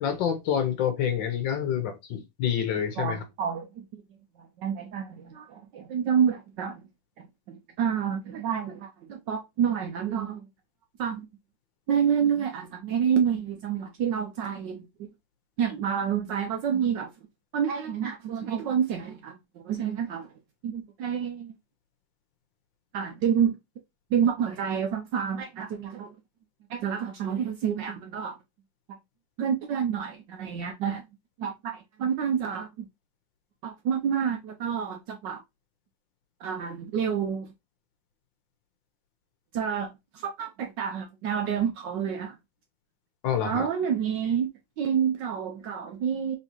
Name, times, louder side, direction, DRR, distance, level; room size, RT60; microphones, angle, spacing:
voice 1, 0.0-3.2 43.2-43.7, left 8 dB, 70° left, 1.3 m, -27 dB
voice 2, 3.0-3.9 4.4-6.8 7.5-10.5 11.0-11.3 11.9-15.1 15.6-17.1 17.5-20.3 20.6-21.6 22.9-23.6 24.1-26.1 26.7-28.3 29.4-31.0 31.4-32.9 33.6-35.4 36.4-37.5 39.5-42.4 43.4-46.4, right 8 dB, 70° right, 1.1 m, -28 dB
4.2 x 3.5 x 2.9 m
omnidirectional pair, 2.4 m